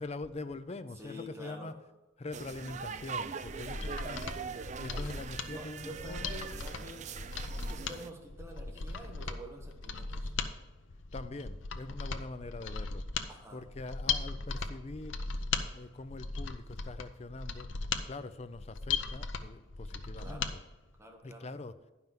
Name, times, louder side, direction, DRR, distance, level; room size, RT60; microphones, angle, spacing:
voice 1, 0.0-1.8 2.2-6.2 11.1-13.1 13.5-15.2 15.7-17.7 18.1-20.6 21.2-21.8, left 2 dB, 35° left, 0.5 m, -43 dB
voice 2, 0.9-1.7 3.6-4.0 5.5-7.1 7.7-10.3 13.3-13.6 20.2-20.5 21.0-21.6, equal, 15° right, 1.5 m, -48 dB
sound 1, 2.3-8.1, right 5 dB, 35° right, 0.4 m, -42 dB
Mechanisms, 3.5-20.5 20.9-21.0, left 5 dB, 80° left, 0.7 m, -38 dB
10.5 x 5.6 x 5.9 m
head